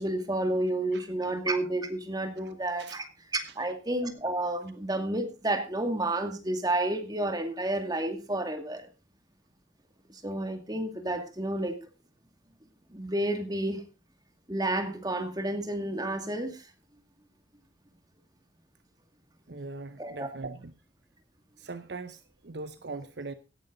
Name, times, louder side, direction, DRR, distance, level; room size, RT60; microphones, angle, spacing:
voice 1, 0.0-3.0 3.6-8.9 10.1-11.8 12.9-13.8 14.5-16.7 20.0-20.3, right 1 dB, 20° right, 6 dB, 2.2 m, -30 dB
voice 2, 19.5-20.7 21.6-23.3, right 3 dB, 55° right, 12 dB, 0.8 m, -40 dB
17.5 x 11.0 x 3.9 m, 0.30 s
head